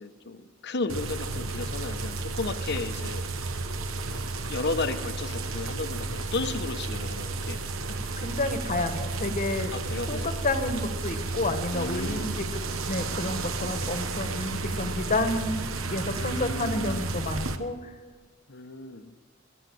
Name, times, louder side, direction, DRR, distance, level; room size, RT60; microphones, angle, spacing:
voice 1, 0.0-3.2 4.1-7.7 9.7-10.4 11.7-12.5 16.2-17.1 18.5-19.1, left 3 dB, 55° left, 10 dB, 1.0 m, -34 dB
sound 1, 0.9-17.6, right 3 dB, 80° right, 1.1 m, -32 dB
voice 2, 8.2-9.7 10.1-15.6 15.9-17.9, left 2 dB, 40° left, 7 dB, 1.4 m, -30 dB
22.5 x 8.2 x 7.8 m, 1.4 s
head